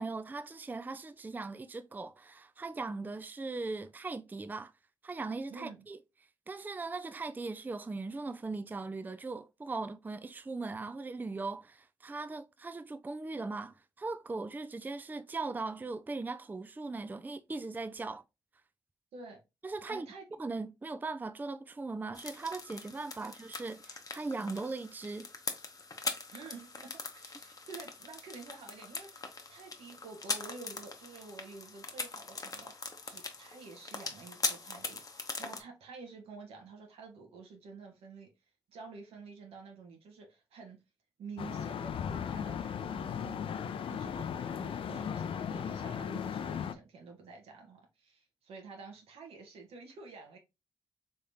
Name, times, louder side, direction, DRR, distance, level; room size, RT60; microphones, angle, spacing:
voice 1, 0.0-4.7 5.0-6.0 6.5-18.2 19.6-20.1 20.4-25.3, right 3 dB, 20° right, 0.4 m, -39 dB
voice 2, 5.5-5.9 19.1-19.4 19.9-20.4 23.2-23.3 26.3-38.3 38.7-40.8 41.2-50.4, right 4 dB, 80° right, 1.1 m, -50 dB
sound 1, 22.1-35.6, left 3 dB, 35° left, 0.8 m, -41 dB
sound 2, 41.4-46.7, left 8 dB, 65° left, 0.4 m, -37 dB
3.4 x 3.3 x 2.7 m
supercardioid pair, 50°, 10 cm